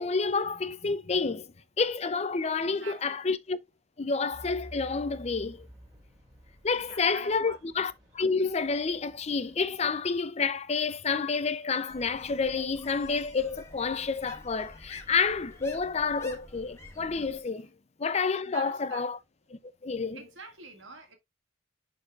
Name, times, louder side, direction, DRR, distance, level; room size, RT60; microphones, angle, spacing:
voice 1, 0.0-1.5 1.8-3.6 4.0-5.7 6.6-17.7 18.0-19.2 19.5-20.2, left 4 dB, 35° left, 0.5 m, -29 dB
voice 2, 2.6-3.2 5.5-5.6 6.7-7.6 18.4-19.1 20.1-21.2, right 4 dB, 80° right, 2.0 m, -47 dB
Truck / Idling, 4.3-9.9, equal, 20° right, 4.2 m, -51 dB
sound 1, 11.9-17.4, left 2 dB, 15° left, 1.4 m, -50 dB
11.0 x 4.1 x 2.4 m
head